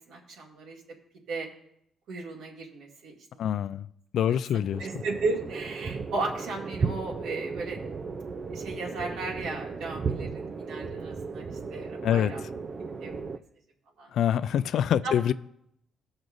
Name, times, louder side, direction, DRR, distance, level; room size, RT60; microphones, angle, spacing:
voice 1, 0.1-0.8 1.3-1.5 2.1-3.1 3.5-3.6 4.3-8.0 8.5-12.4 13.0-13.2 14.0-14.1 15.0-15.1, right 3 dB, 80° right, -1 dB, 2.2 m, -35 dB
voice 2, 3.4-3.9 4.1-4.9 12.0-12.3 14.1-15.3, left 9 dB, 70° left, 15 dB, 0.3 m, -25 dB
sound 1, 4.7-13.4, right 5 dB, 45° right, 0.5 m, -35 dB
16.0 x 6.0 x 2.6 m, 0.74 s
cardioid pair, 90°, 0 cm